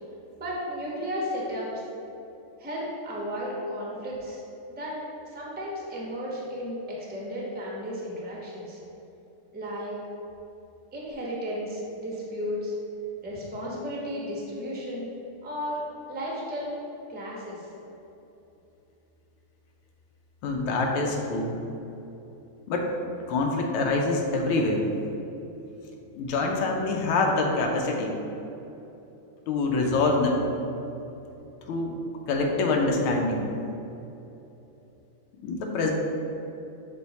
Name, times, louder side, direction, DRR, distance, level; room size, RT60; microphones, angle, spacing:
voice 1, 0.4-1.8 2.6-4.4 4.7-5.0 5.3-8.8 9.5-9.9 10.9-12.7 13.2-15.1 15.4-15.8 16.1-16.7 17.1-17.7, equal, 10° right, -4 dB, 0.4 m, -34 dB
voice 2, 20.4-21.6 22.7-22.9 23.3-24.9 26.2-28.2 29.5-30.5 31.7-31.9 32.3-33.5 35.4-35.9, left 3 dB, 85° left, 1 dB, 1.6 m, -25 dB
7.4 x 3.5 x 4.0 m, 3.0 s
omnidirectional pair, 2.3 m